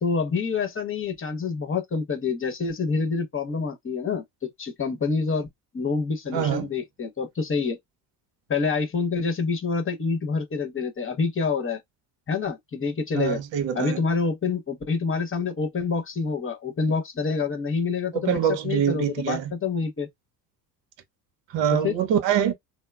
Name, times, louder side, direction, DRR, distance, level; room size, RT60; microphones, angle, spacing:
voice 1, 0.0-5.5 5.7-7.8 8.5-11.8 12.3-13.4 13.7-18.4 18.6-20.1 21.8-21.9, left 5 dB, 25° left, 0.9 m, -27 dB
voice 2, 6.3-6.7 13.1-14.0 18.1-19.5 21.5-22.5, right 9 dB, 60° right, 0.8 m, -24 dB
2.9 x 2.0 x 2.3 m
hypercardioid pair, 65°, 48 cm